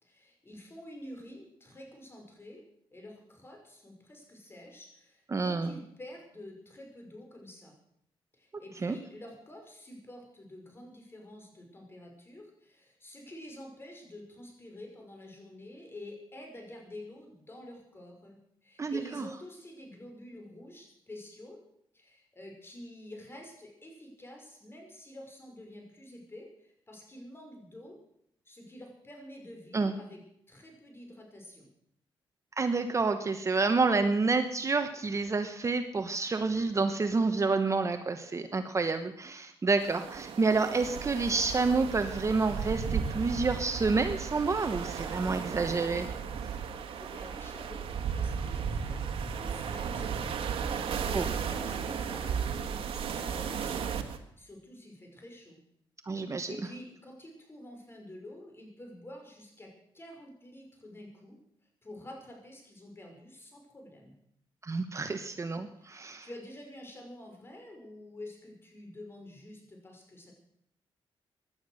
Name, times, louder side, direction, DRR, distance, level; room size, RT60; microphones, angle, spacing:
voice 1, 0.0-2.6 2.9-7.8 8.3-21.6 21.9-28.0 28.5-30.2 30.5-31.7 46.6-55.6 56.1-61.4 61.8-64.1 65.8-70.3, left 1 dB, 25° left, 2 dB, 5.8 m, -48 dB
voice 2, 5.3-5.7 8.8-8.9 18.8-19.2 29.7-29.9 32.6-46.1 51.1-51.3 56.1-56.5 64.6-66.3, right 4 dB, 30° right, 8 dB, 1.1 m, -29 dB
sound 1, 39.8-54.2, right 7 dB, 75° right, 1.7 m, -35 dB
17.5 x 11.5 x 6.5 m, 0.74 s
cardioid pair, 100°, 9 cm